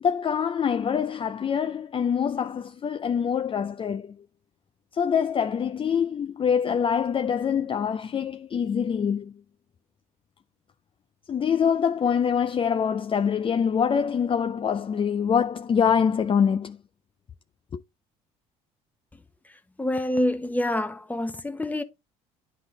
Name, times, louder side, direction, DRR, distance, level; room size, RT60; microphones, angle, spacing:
voice 1, 0.0-4.1 4.9-9.3 11.3-16.8 17.7-17.8, left 7 dB, 35° left, 0.6 m, -25 dB
voice 2, 19.4-21.8, left 1 dB, 10° left, 1.1 m, -27 dB
10.0 x 3.9 x 3.3 m
supercardioid pair, 75°, 15 cm